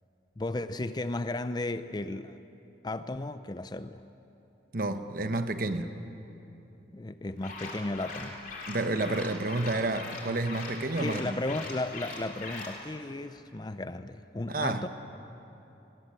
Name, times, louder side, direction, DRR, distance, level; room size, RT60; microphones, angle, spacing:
voice 1, 0.4-2.4 2.8-4.0 6.9-8.4 11.0-14.9, left 2 dB, 20° left, 12 dB, 0.5 m, -34 dB
voice 2, 4.7-5.9 8.7-11.4 14.5-14.9, right 2 dB, 50° right, 9 dB, 1.1 m, -30 dB
sound 1, 7.4-12.8, left 3 dB, 45° left, 3.4 m, -41 dB
20.0 x 18.0 x 9.0 m, 3.0 s
head